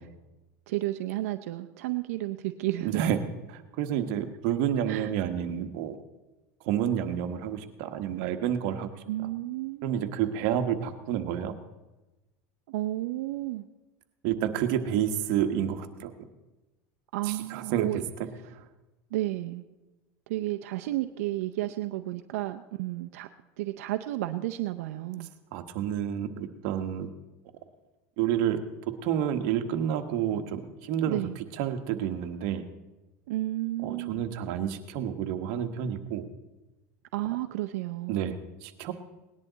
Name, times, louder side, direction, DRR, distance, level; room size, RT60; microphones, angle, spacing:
voice 1, 0.7-3.0 4.9-5.1 9.1-10.0 12.7-13.7 17.1-18.0 19.1-19.6 20.3-23.3 23.6-25.3 31.0-31.3 33.3-34.2 37.1-38.4, right 16 dB, 80° right, 7 dB, 0.6 m, -32 dB
voice 2, 2.8-3.2 3.5-6.0 6.6-8.9 9.8-11.5 14.2-16.1 17.2-18.0 18.5-18.7 25.5-27.1 28.2-31.2 31.6-32.6 33.8-36.2 38.1-38.9, right 9 dB, 60° right, 8 dB, 1.2 m, -29 dB
18.5 x 10.5 x 4.0 m, 1.1 s
supercardioid pair, 140°, 8 cm